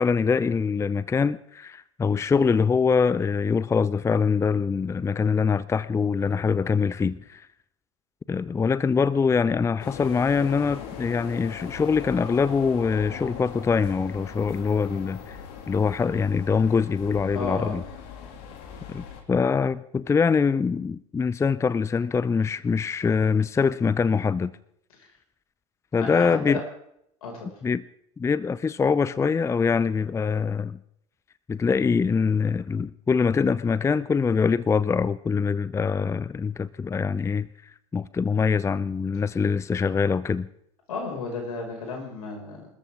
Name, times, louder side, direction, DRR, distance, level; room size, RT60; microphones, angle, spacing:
voice 1, 0.0-7.5 8.3-15.4 15.7-17.8 18.9-24.5 25.9-26.6 27.6-27.8 28.2-30.8 31.5-40.5, left 5 dB, 15° left, 19 dB, 0.5 m, -24 dB
sound 1, 9.8-19.2, left 7 dB, 55° left, 2.8 m, -40 dB
voice 2, 17.3-17.8 26.0-26.6 27.2-27.5 40.9-42.7, left 3 dB, 75° left, 1 dB, 5.8 m, -33 dB
27.0 x 13.5 x 3.7 m, 0.74 s
figure-of-eight pair, 75°, 19 cm